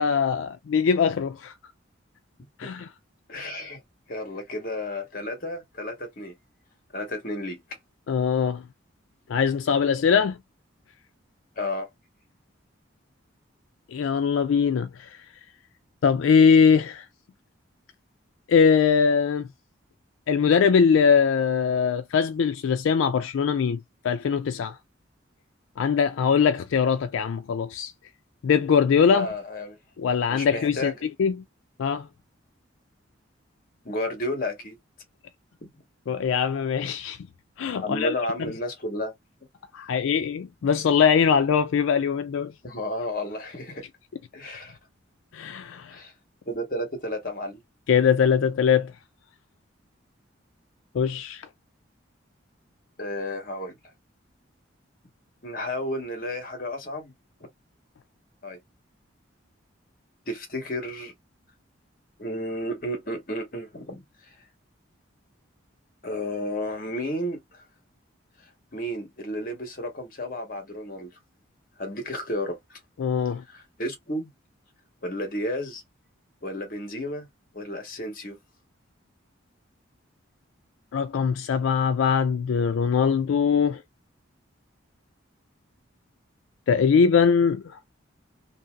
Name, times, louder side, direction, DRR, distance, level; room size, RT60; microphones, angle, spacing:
voice 1, 0.0-1.5 2.6-2.9 8.1-8.6 9.3-10.4 13.9-15.2 16.0-17.1 18.5-19.5 20.3-24.8 25.8-27.9 28.4-29.3 30.0-30.9 31.2-31.3 31.8-32.1 36.1-37.2 37.6-38.1 39.7-42.5 45.3-46.0 47.9-48.9 50.9-51.5 73.0-73.4 80.9-83.8 86.7-87.8, left 6 dB, 75° left, 0.3 m, -22 dB
voice 2, 3.3-3.8 4.1-6.3 6.9-7.6 11.6-11.9 29.1-29.8 30.3-31.0 33.8-34.8 35.6-35.7 37.8-39.1 42.6-43.8 44.3-44.8 45.9-46.1 46.5-47.6 53.0-53.8 55.4-57.1 58.4-58.6 60.3-61.1 62.2-64.4 66.0-67.7 68.4-71.1 71.8-72.8 73.5-74.3 75.0-75.8 76.4-77.3 77.5-78.4, left 1 dB, 45° left, 1.1 m, -32 dB
2.8 x 2.7 x 2.3 m
head